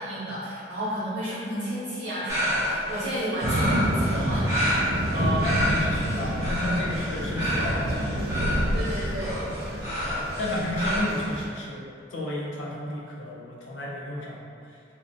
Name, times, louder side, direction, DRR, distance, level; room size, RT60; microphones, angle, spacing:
voice 1, 0.0-4.9 8.7-9.4, right 1 dB, 80° right, -13 dB, 0.8 m, -32 dB
sound 1, 2.3-11.0, equal, 15° right, 0.7 m, -29 dB
sound 2, 3.4-11.5, equal, 55° right, 0.3 m, -28 dB
voice 2, 5.1-8.2 9.7-14.8, left 1 dB, 80° left, -4 dB, 0.5 m, -32 dB
2.6 x 2.1 x 2.5 m, 2.4 s
head